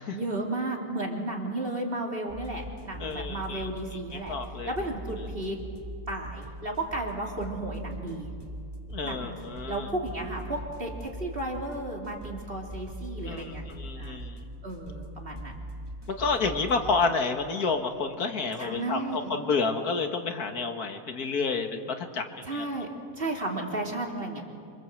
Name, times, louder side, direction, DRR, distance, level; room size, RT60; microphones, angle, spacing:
voice 1, 0.1-4.3 4.6-5.6 6.1-8.3 9.0-9.4 9.7-13.6 14.0-14.2 14.6-15.7 18.6-19.3 22.4-22.9 23.2-24.4, right 2 dB, 40° right, 0 dB, 3.4 m, -33 dB
sound 1, 2.3-17.1, right 1 dB, 15° right, 2.3 m, -41 dB
voice 2, 3.0-3.7 4.1-4.7 8.9-9.9 13.3-14.5 16.2-22.7, left 4 dB, 85° left, 6 dB, 2.2 m, -30 dB
27.0 x 25.5 x 7.9 m, 2.4 s
omnidirectional pair, 1.6 m